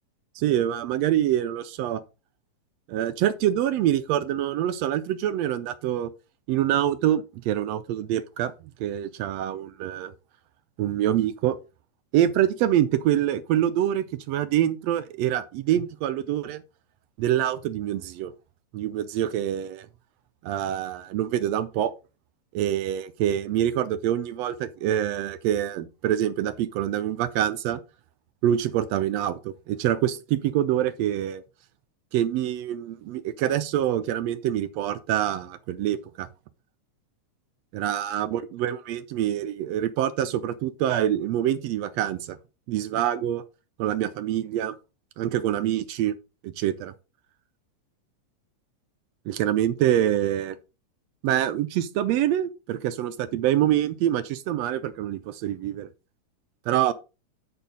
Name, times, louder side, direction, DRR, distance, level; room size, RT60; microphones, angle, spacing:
voice 1, 0.4-2.0 2.9-6.1 6.5-10.1 10.8-11.6 12.1-16.6 17.2-18.3 18.7-19.9 20.4-21.9 22.5-27.8 28.4-31.4 32.1-36.3 37.7-42.4 42.7-43.4 43.8-44.7 45.2-46.1 46.4-46.9 49.3-50.6 51.2-55.9 56.7-56.9, right 11 dB, 75° right, 1.6 m, -25 dB
9.0 x 4.3 x 5.2 m
omnidirectional pair, 3.4 m